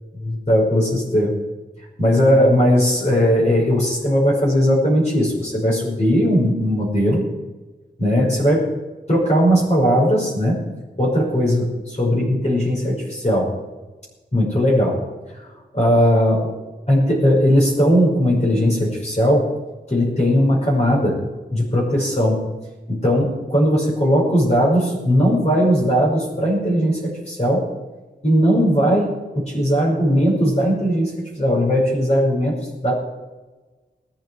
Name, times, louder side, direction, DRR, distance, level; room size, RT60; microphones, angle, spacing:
voice 1, 0.2-1.3 2.0-7.2 8.0-8.7 9.1-10.6 11.0-13.5 14.3-15.0 15.7-16.5 16.9-19.5 19.9-21.2 21.5-22.4 22.9-27.6 28.2-32.9, equal, 40° left, -3 dB, 5.6 m, -18 dB
20.5 x 9.5 x 4.8 m, 1.2 s
wide cardioid pair, 80°, 18 cm